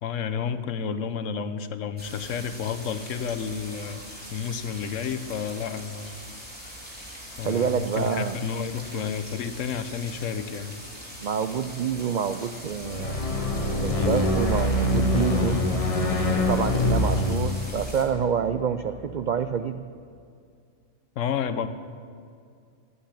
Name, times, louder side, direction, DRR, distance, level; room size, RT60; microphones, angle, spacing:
voice 1, 0.0-4.0 4.3-6.1 7.4-10.7 21.2-21.7, left 7 dB, 75° left, 11 dB, 1.1 m, -31 dB
sound 1, 2.0-18.0, equal, 5° right, 2.9 m, -42 dB
voice 2, 7.4-8.4 11.2-13.2 13.8-15.6 16.3-19.8, right 7 dB, 75° right, 9 dB, 0.4 m, -27 dB
sound 2, 12.7-19.1, left 2 dB, 30° left, 0.9 m, -25 dB
11.0 x 9.0 x 9.9 m, 2.3 s
omnidirectional pair, 1.3 m